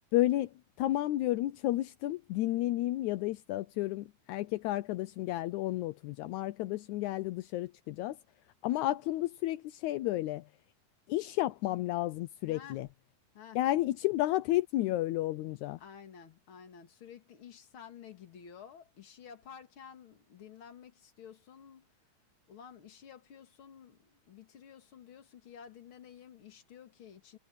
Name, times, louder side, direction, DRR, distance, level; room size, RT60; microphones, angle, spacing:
voice 1, 0.1-8.2 8.6-10.5 11.1-12.9 13.6-15.8, left 15 dB, 80° left, 1.7 m, -32 dB
voice 2, 12.5-12.8 13.3-13.6 15.8-21.9 22.5-27.4, left 8 dB, 45° left, 2.4 m, -52 dB
omnidirectional pair, 4.1 m